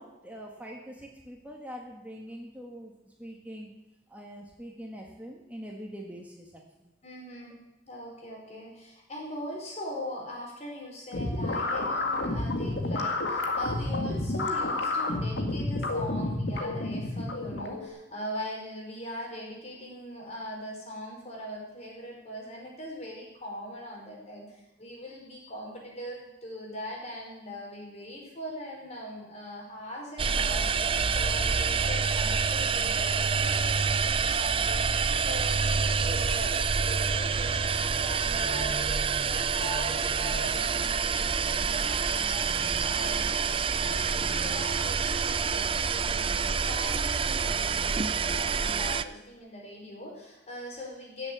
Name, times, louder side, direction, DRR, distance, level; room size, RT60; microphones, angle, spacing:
voice 1, 0.0-2.9 3.2-3.7 4.1-6.9, equal, 10° right, 0 dB, 1.7 m, -43 dB
voice 2, 7.0-7.6 7.9-43.4 43.8-51.3, equal, 40° left, -1 dB, 5.2 m, -41 dB
sound 1, 11.1-17.9, left 2 dB, 75° left, 2.0 m, -30 dB
sound 2, 30.2-49.0, right 5 dB, 30° right, 0.5 m, -27 dB
16.0 x 7.6 x 8.2 m, 0.98 s
head